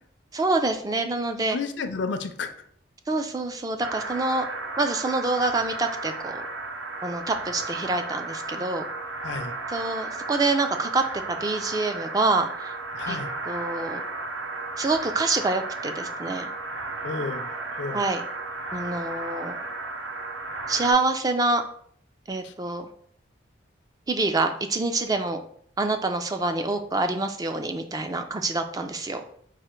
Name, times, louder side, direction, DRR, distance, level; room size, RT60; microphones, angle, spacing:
voice 1, 0.3-1.6 3.1-4.5 4.8-6.5 7.0-8.9 9.7-12.7 13.1-13.2 13.5-14.0 14.8-16.5 17.9-18.2 18.7-19.6 20.7-21.6 22.3-22.9 24.1-25.4 25.8-29.2, right 3 dB, 20° right, 6 dB, 0.3 m, -26 dB
voice 2, 1.5-2.5 9.2-9.5 12.9-13.3 17.0-17.5 17.8-18.0 22.4-22.5, left 4 dB, 70° left, 8 dB, 0.5 m, -31 dB
sound 1, 3.8-20.9, right 3 dB, 80° right, 0.6 m, -34 dB
4.8 x 2.4 x 4.3 m, 0.62 s
head